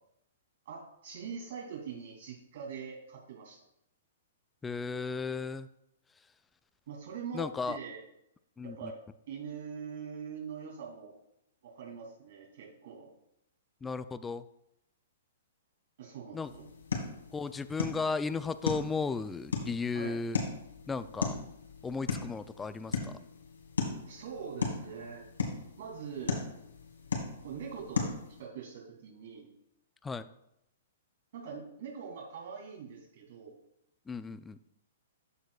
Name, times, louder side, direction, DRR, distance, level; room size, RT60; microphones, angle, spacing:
voice 1, 0.6-3.6 6.9-8.0 8.6-9.0 9.3-11.2 11.6-13.1 16.0-16.7 19.9-20.1 24.1-25.3 25.8-26.4 27.4-28.1 28.4-29.5 31.3-33.5, right 6 dB, 60° right, -1 dB, 2.8 m, -43 dB
voice 2, 4.6-5.7 7.3-7.8 8.6-8.9 13.8-14.4 16.3-16.5 17.3-20.4 20.9-21.5 21.8-23.2 30.0-30.2 34.1-34.6, left 4 dB, 10° left, 13 dB, 0.4 m, -35 dB
sound 1, 16.4-28.4, left 4 dB, 85° left, 1.8 m, -37 dB
13.5 x 4.8 x 2.4 m, 0.81 s
hypercardioid pair, 120°, 0 cm